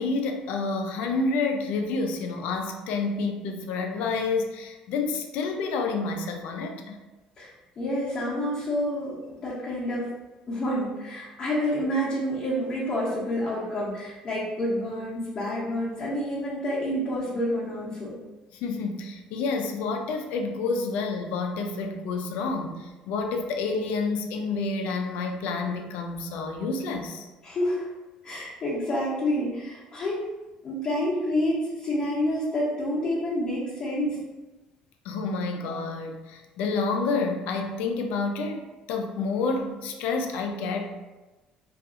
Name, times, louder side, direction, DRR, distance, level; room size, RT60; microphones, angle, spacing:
voice 1, 0.0-7.0 18.5-27.3 35.0-40.8, left 4 dB, 80° left, 4 dB, 0.4 m, -29 dB
voice 2, 7.4-9.1 9.4-10.1 10.5-18.2 27.4-27.9 28.2-30.2 30.6-34.2, equal, 35° left, -9 dB, 0.7 m, -28 dB
2.7 x 2.3 x 2.4 m, 1.1 s
cardioid pair, 140°, 2 cm